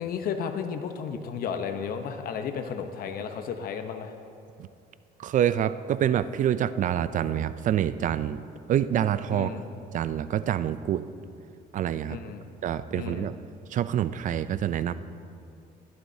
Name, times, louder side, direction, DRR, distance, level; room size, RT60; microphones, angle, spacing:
voice 1, 0.0-4.1 9.3-9.6 12.1-12.4 12.9-13.3, left 7 dB, 60° left, 6 dB, 0.8 m, -33 dB
voice 2, 5.2-8.4 8.7-9.5 9.9-11.0 11.7-12.2 12.6-13.3 13.7-14.9, right 10 dB, 50° right, 14 dB, 0.4 m, -26 dB
15.5 x 11.5 x 2.7 m, 2.5 s
cardioid pair, 110°, 17 cm